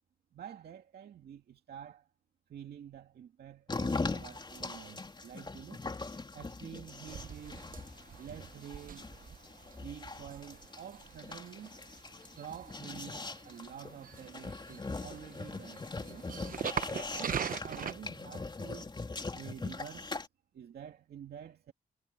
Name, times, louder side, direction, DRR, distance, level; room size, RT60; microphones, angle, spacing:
voice 1, 0.3-2.1 2.5-5.9 6.3-7.8 8.2-9.1 9.8-11.8 12.3-16.3 17.1-18.9 19.3-20.2 20.5-21.7, right 9 dB, 75° right, 2.2 m, -49 dB
sound 1, 3.7-20.3, left 3 dB, 30° left, 3.5 m, -41 dB
sound 2, 7.1-17.9, right 7 dB, 60° right, 0.9 m, -43 dB
cardioid pair, 75°, 16 cm